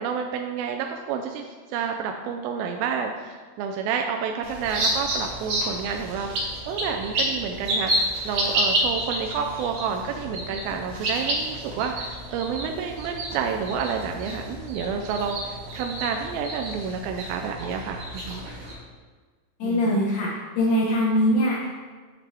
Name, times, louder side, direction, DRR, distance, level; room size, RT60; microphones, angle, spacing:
voice 1, 0.0-18.4 19.6-20.0, right 6 dB, 85° right, 3 dB, 2.3 m, -30 dB
sound 1, 4.4-18.7, right 1 dB, 50° right, 2.4 m, -30 dB
voice 2, 19.6-20.3 20.6-21.7, equal, 75° left, -4 dB, 2.6 m, -22 dB
9.4 x 5.8 x 3.4 m, 1.5 s
omnidirectional pair, 4.3 m